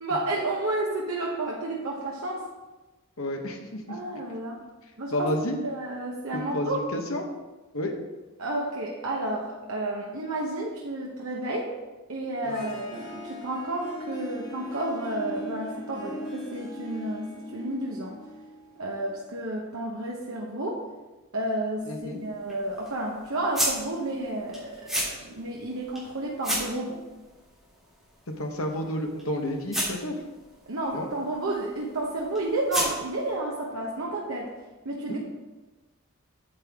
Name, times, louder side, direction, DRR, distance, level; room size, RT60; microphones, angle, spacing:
voice 1, 0.0-2.4 3.9-4.6 5.0-5.3 5.6-6.8 8.4-11.7 12.1-18.1 18.8-20.8 21.3-27.0 30.7-34.5 34.8-35.2, right 1 dB, 70° right, -2 dB, 1.0 m, -31 dB
voice 2, 3.2-4.0 5.1-5.6 6.3-7.3 7.7-7.9 12.4-12.7 21.9-22.3 28.4-30.1 30.9-31.1 35.1-35.2, left 1 dB, 70° left, 3 dB, 1.2 m, -31 dB
Harp, 12.2-19.3, left 1 dB, 20° left, 2.1 m, -40 dB
sound 1, 21.8-33.3, equal, ahead, 3.1 m, -36 dB
8.7 x 7.9 x 3.6 m, 1.1 s
head